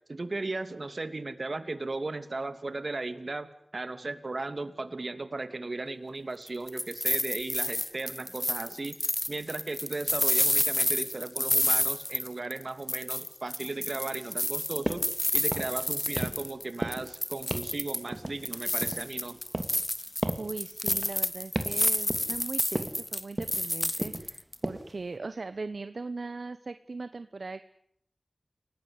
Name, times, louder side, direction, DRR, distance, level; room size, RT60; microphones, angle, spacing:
voice 1, 0.1-3.5 3.7-9.0 9.3-15.1 15.3-19.4, right 2 dB, 55° right, 10 dB, 2.7 m, -36 dB
sound 1, 6.5-12.6 12.9-16.6 16.9-18.1 18.4-24.5, left 1 dB, 15° left, 1.1 m, -30 dB
sound 2, 14.9-15.1 15.4-15.8 16.2-16.5 16.8-17.1 17.5-17.8 18.1-19.1 19.5-19.9 20.2-20.5 20.9-21.2 21.5-21.8 22.1-22.4 22.7-23.0 23.4-23.7 24.0-24.3 24.6-24.9, right 1 dB, 20° right, 2.9 m, -34 dB
voice 2, 20.4-27.6, right 3 dB, 70° right, 11 dB, 1.1 m, -39 dB
29.5 x 18.5 x 9.8 m, 0.71 s
wide cardioid pair, 70°, 0 cm